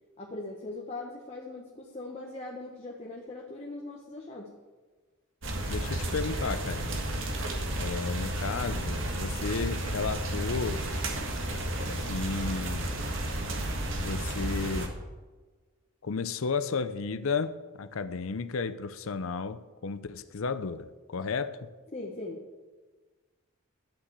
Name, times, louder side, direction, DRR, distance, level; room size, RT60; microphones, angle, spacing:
voice 1, 0.2-4.5 21.9-22.4, left 2 dB, 30° left, 1.2 m, -40 dB
sound 1, 5.4-14.9, right 1 dB, 60° right, 1.7 m, -32 dB
voice 2, 5.7-7.1 7.8-10.8 12.0-12.9 14.0-14.9 16.0-21.7, left 4 dB, 75° left, 0.6 m, -33 dB
12.0 x 5.9 x 8.1 m
head